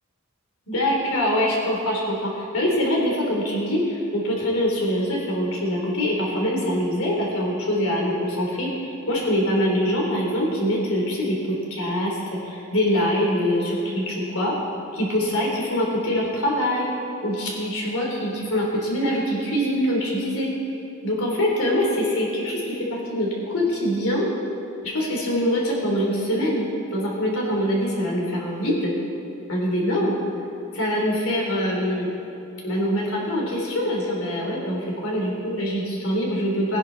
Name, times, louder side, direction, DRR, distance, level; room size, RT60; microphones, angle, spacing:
voice 1, 0.7-14.5 14.9-16.9 17.2-20.5 21.0-24.3 24.8-28.9 29.5-30.2 30.7-32.1 32.6-36.8, equal, 85° left, -2 dB, 3.6 m, -24 dB
20.0 x 10.5 x 4.1 m, 2.9 s
head